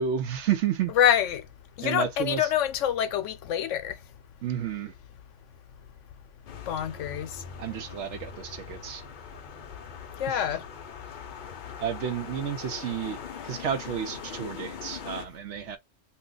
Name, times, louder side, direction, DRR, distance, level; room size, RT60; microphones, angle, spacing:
voice 1, 0.0-0.9 1.8-2.5 4.4-4.9 7.6-9.0 10.3-10.5 11.8-13.2 13.4-15.8, right 8 dB, 70° right, 0.8 m, -31 dB
voice 2, 1.0-1.4 1.8-3.9 6.7-7.3 10.2-10.6, left 10 dB, 75° left, 0.9 m, -25 dB
sound 1, 6.5-15.3, left 7 dB, 55° left, 0.6 m, -41 dB
2.7 x 2.3 x 3.7 m
omnidirectional pair, 1.3 m